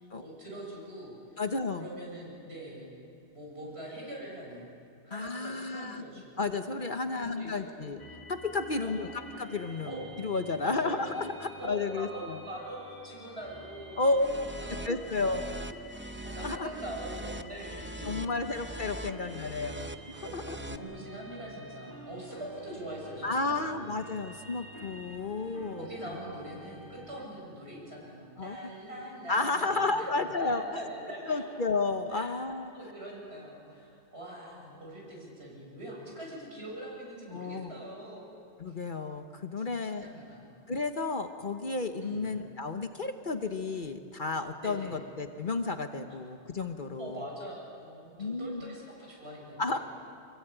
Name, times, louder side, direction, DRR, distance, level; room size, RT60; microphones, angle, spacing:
voice 1, 0.0-1.4 1.8-2.9 3.3-4.7 5.0-6.4 7.1-8.0 8.8-9.3 9.8-10.0 10.6-11.3 11.5-16.0 16.2-18.4 18.9-19.1 20.1-24.0 25.8-31.4 32.1-32.3 32.7-38.2 38.7-38.8 39.6-40.5 42.0-42.3 44.6-45.0 47.0-49.8, right 1 dB, 65° right, -3 dB, 8.1 m, -43 dB
voice 2, 1.4-1.9 5.1-6.0 6.4-8.0 8.3-12.4 14.0-14.4 14.8-15.7 16.4-16.7 18.0-20.6 23.2-25.9 28.4-28.7 29.3-30.6 31.3-32.7 37.3-37.7 38.6-40.1 40.7-47.2 48.2-48.6 49.6-49.8, left 3 dB, 45° left, 7 dB, 1.2 m, -32 dB
sound 1, 8.0-27.3, left 1 dB, 20° left, 1.8 m, -49 dB
sound 2, 14.1-20.8, right 1 dB, 15° right, 0.6 m, -42 dB
25.5 x 22.0 x 9.1 m, 2.5 s
omnidirectional pair, 1.2 m